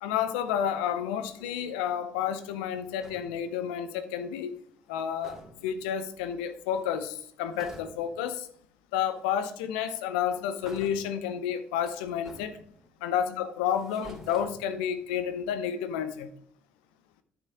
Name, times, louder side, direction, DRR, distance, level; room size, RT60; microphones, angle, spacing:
voice 1, 0.0-4.6 4.9-8.5 8.9-12.6 13.0-16.3, left 9 dB, 75° left, 11 dB, 0.7 m, -30 dB
sound 1, 0.5-1.7 2.1-3.5 4.9-5.0 5.2-5.9 6.7-7.1 7.5-8.3 9.2-9.3 10.6-11.3 11.7-13.0 13.5-15.1, right 1 dB, 10° right, 3.0 m, -50 dB
9.7 x 7.2 x 3.5 m, 0.64 s
figure-of-eight pair, 45°, 5 cm